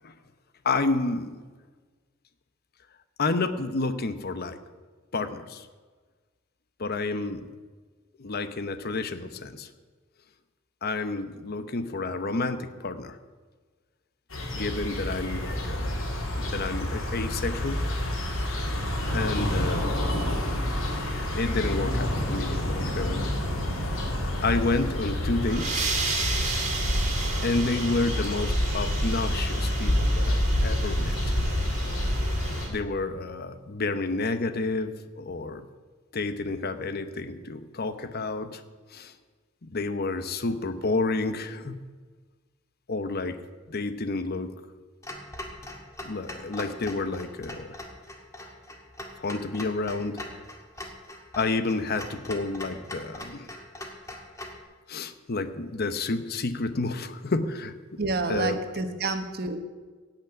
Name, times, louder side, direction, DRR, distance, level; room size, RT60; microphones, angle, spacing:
voice 1, 0.6-1.4 3.2-4.6 5.1-5.7 6.8-7.5 8.2-9.7 10.8-13.2 14.5-15.9 16.4-17.9 19.1-20.1 21.3-23.3 24.4-25.9 27.4-31.4 32.7-35.7 36.1-38.6 38.9-39.1 39.6-41.8 42.9-43.4 43.7-44.5 46.0-47.8 49.2-50.2 50.8-50.9 51.4-53.5 54.9-58.0 58.3-58.6, left 3 dB, 50° left, 11 dB, 0.9 m, -30 dB
sound 1, 14.3-32.7, left 1 dB, 80° left, 2.9 m, -28 dB
sound 2, 25.3-32.7, right 4 dB, 35° right, 2.3 m, -34 dB
Clock, 45.0-54.6, left 1 dB, 15° left, 1.6 m, -42 dB
voice 2, 58.0-59.6, right 3 dB, 50° right, 8 dB, 1.2 m, -29 dB
16.5 x 5.9 x 8.8 m, 1.4 s
head